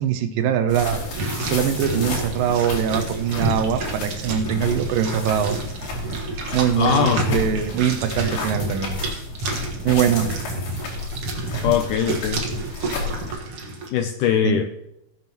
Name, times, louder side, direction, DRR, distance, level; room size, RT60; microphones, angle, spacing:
voice 1, 0.0-5.6 6.5-9.0 9.8-10.3 11.7-11.8 14.4-14.6, right 9 dB, 80° right, 9 dB, 2.3 m, -22 dB
sound 1, 0.7-13.4, left 3 dB, 70° left, 4.3 m, -32 dB
sound 2, 0.9-13.9, right 2 dB, 50° right, 1.7 m, -30 dB
voice 2, 6.8-7.4 11.6-12.4 13.9-14.7, left 9 dB, 90° left, 7 dB, 1.8 m, -21 dB
19.0 x 7.3 x 2.9 m, 0.84 s
omnidirectional pair, 4.2 m